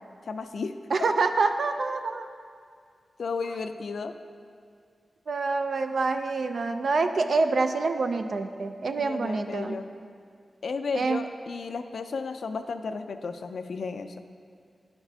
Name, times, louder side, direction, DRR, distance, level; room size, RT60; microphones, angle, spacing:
voice 1, 0.3-0.7 3.2-4.1 9.0-9.9 10.6-14.2, left 4 dB, 80° left, 8 dB, 0.3 m, -33 dB
voice 2, 0.9-2.3 5.3-9.8 10.9-11.2, right 3 dB, 70° right, 7 dB, 0.4 m, -26 dB
10.5 x 6.0 x 2.7 m, 2.2 s
cardioid pair, 70°, 0 cm